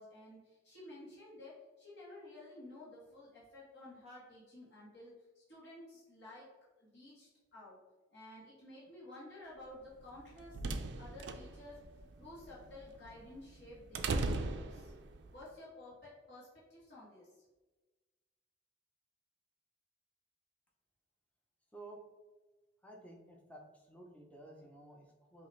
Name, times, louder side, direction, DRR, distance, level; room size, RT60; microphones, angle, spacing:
voice 1, 0.0-6.5 6.8-7.8 8.1-10.6 11.0-11.8 12.2-14.9 15.3-17.3, left 1 dB, 60° left, -7 dB, 1.4 m, -53 dB
sound 1, 10.0-15.3, right 3 dB, 65° right, 0.4 m, -39 dB
voice 2, 22.8-25.5, right 1 dB, 5° left, 0 dB, 0.5 m, -53 dB
5.6 x 2.4 x 3.1 m, 1.2 s
head